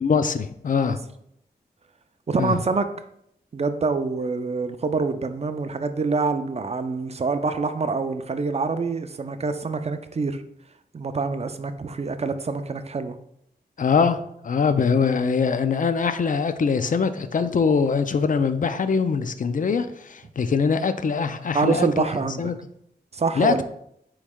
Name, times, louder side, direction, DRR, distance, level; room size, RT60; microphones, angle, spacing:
voice 1, 0.0-1.0 2.4-2.6 13.8-22.0 22.4-22.5 23.4-23.6, left 5 dB, 50° left, 11 dB, 0.4 m, -22 dB
voice 2, 2.3-2.9 3.5-10.4 10.9-13.2 21.5-22.5 23.1-23.6, right 4 dB, 40° right, 9 dB, 0.4 m, -26 dB
4.2 x 3.1 x 3.6 m, 0.74 s
cardioid pair, 50°, 17 cm